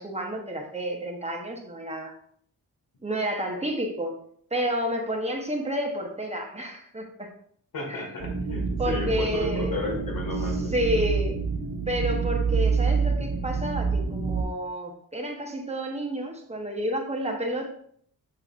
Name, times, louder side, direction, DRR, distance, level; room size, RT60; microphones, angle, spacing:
voice 1, 0.0-2.1 3.0-4.2 4.5-7.3 7.9-8.0 8.8-9.8 10.4-11.4 11.9-17.7, equal, 20° right, 1 dB, 1.0 m, -30 dB
voice 2, 7.7-10.7, left 2 dB, 80° left, 1 dB, 1.9 m, -33 dB
sound 1, 8.2-14.4, right 5 dB, 70° right, 1.2 m, -27 dB
6.9 x 5.6 x 2.5 m, 0.64 s
wide cardioid pair, 130°, 35 cm